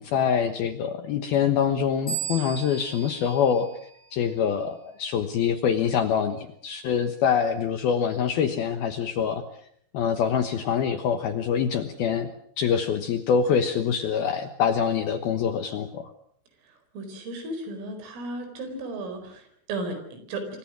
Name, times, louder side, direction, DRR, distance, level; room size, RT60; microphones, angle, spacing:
voice 1, 0.0-3.7 4.1-9.4 9.9-12.3 12.6-16.1, left 7 dB, 70° left, 9 dB, 2.4 m, -25 dB
sound 1, 2.1-4.5, right 8 dB, 30° left, 3.5 m, -37 dB
voice 2, 16.6-20.5, right 2 dB, 75° right, 8 dB, 7.0 m, -35 dB
28.0 x 24.0 x 6.3 m, 0.64 s
omnidirectional pair, 6.0 m